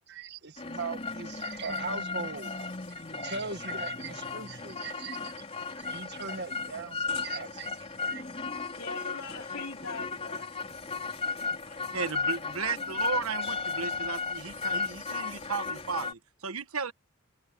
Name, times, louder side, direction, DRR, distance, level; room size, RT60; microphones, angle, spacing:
voice 1, 0.1-2.5 2.9-5.4 5.7-8.4, right 4 dB, 50° right, 1.8 m, -40 dB
sound 1, 0.6-16.1, left 4 dB, 30° left, 3.8 m, -35 dB
voice 2, 8.7-10.5 11.6-12.4 12.8-13.2 13.5-13.6, left 4 dB, 70° left, 3.4 m, -43 dB
voice 3, 11.9-16.9, right 5 dB, 80° right, 1.3 m, -35 dB
head